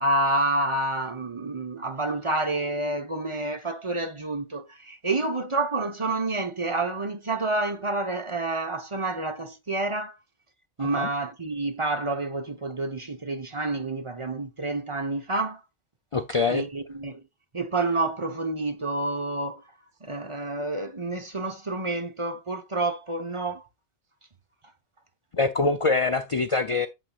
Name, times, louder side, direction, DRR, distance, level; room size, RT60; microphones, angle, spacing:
voice 1, 0.0-10.2 10.8-15.6 16.5-17.2 17.5-19.6 20.0-23.7, right 2 dB, 25° right, 1.0 m, -28 dB
voice 2, 16.1-16.7 25.3-26.9, left 4 dB, 45° left, 0.4 m, -24 dB
8.7 x 7.5 x 2.4 m
omnidirectional pair, 1.2 m